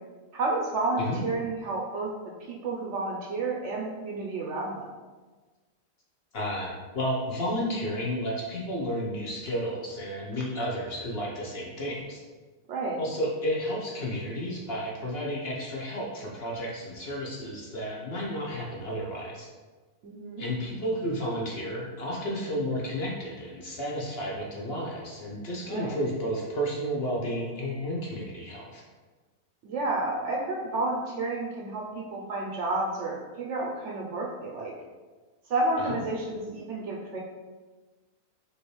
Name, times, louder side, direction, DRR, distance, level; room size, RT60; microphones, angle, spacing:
voice 1, 0.3-2.1 2.5-4.9 12.7-13.0 20.0-20.4 25.6-26.0 29.6-34.7 35.5-37.2, right 2 dB, 65° right, -1 dB, 0.8 m, -31 dB
voice 2, 6.3-12.2 13.0-19.5 20.4-28.8 35.8-36.0, equal, 50° left, -3 dB, 1.0 m, -32 dB
5.3 x 3.1 x 3.1 m, 1.3 s
omnidirectional pair, 1.5 m